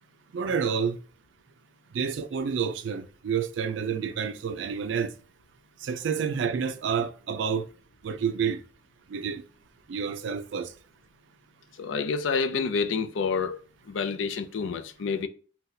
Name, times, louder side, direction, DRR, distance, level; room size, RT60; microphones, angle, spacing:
voice 1, 0.3-1.0 1.9-5.1 5.8-7.7 8.0-8.6 9.1-9.4 9.9-10.7, right 6 dB, 70° right, 0.4 m, -29 dB
voice 2, 11.8-13.6 13.9-15.3, left 5 dB, 85° left, 0.4 m, -28 dB
2.7 x 2.2 x 3.8 m
head